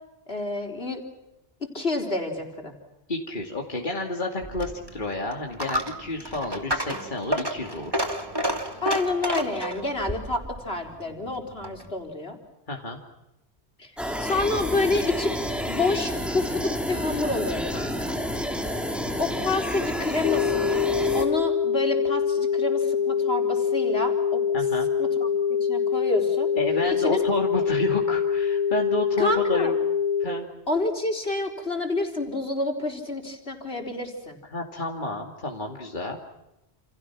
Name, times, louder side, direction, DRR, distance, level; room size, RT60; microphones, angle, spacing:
voice 1, 0.3-1.0 1.7-2.7 8.8-12.4 13.8-13.9 14.2-15.3 15.7-18.2 19.2-24.4 25.0-25.3 25.6-26.5 27.0-27.2 27.6-27.7 29.2-29.7 30.7-34.4, left 2 dB, 70° left, 3 dB, 4.6 m, -28 dB
voice 2, 3.1-8.1 12.7-13.0 24.5-24.9 26.6-29.7 30.2-30.5 34.5-36.2, left 2 dB, 50° left, 1 dB, 2.7 m, -30 dB
Coin (dropping), 4.4-11.9, equal, 20° right, 2.7 m, -31 dB
sound 1, 14.0-21.2, equal, ahead, 3.8 m, -29 dB
sound 2, 20.2-30.2, left 7 dB, 30° left, 3.3 m, -24 dB
29.5 x 29.0 x 6.2 m, 0.93 s
omnidirectional pair, 1.1 m